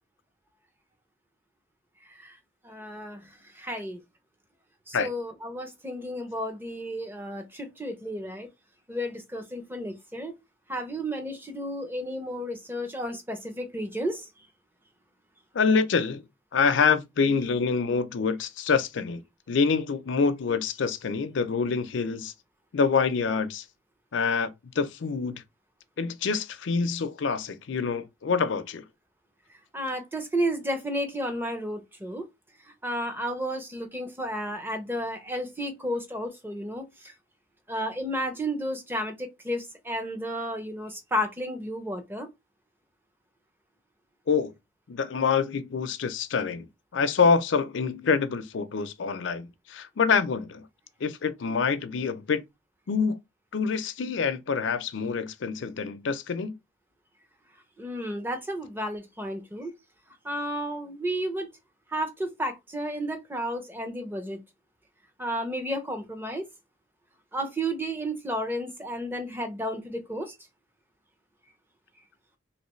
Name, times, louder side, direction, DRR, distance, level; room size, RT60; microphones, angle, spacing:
voice 1, 2.6-3.2 3.5-4.0 4.9-8.5 8.9-10.3 10.7-14.3 29.7-32.2 32.8-37.1 37.7-42.3 57.8-59.7 60.2-61.5 61.9-64.4 65.2-66.5 67.3-70.4, equal, 10° right, 0.6 m, -32 dB
voice 2, 15.5-16.2 16.5-19.2 19.5-22.3 22.7-23.6 24.1-24.5 24.8-25.4 26.0-28.8 44.3-44.5 44.9-46.7 46.9-50.7 51.0-52.4 52.9-53.2 53.5-56.5, left 5 dB, 70° left, 0.5 m, -26 dB
3.2 x 3.0 x 3.0 m
head